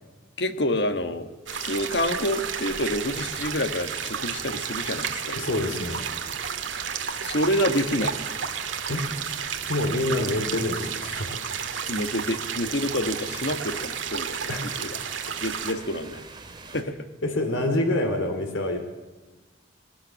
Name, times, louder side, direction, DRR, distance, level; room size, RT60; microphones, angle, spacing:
voice 1, 0.4-5.5 7.2-8.2 11.9-15.0 15.4-16.2 16.7-16.9, left 1 dB, 60° left, 8 dB, 1.5 m, -28 dB
sound 1, 1.5-15.7, right 7 dB, 85° right, 1.7 m, -32 dB
sound 2, 1.7-16.8, right 3 dB, 25° right, 2.2 m, -45 dB
voice 2, 5.4-6.0 8.9-9.0 9.7-11.3 14.5-14.8 17.2-18.8, left 1 dB, 90° left, 5 dB, 2.5 m, -26 dB
19.5 x 18.5 x 7.4 m, 1.2 s
head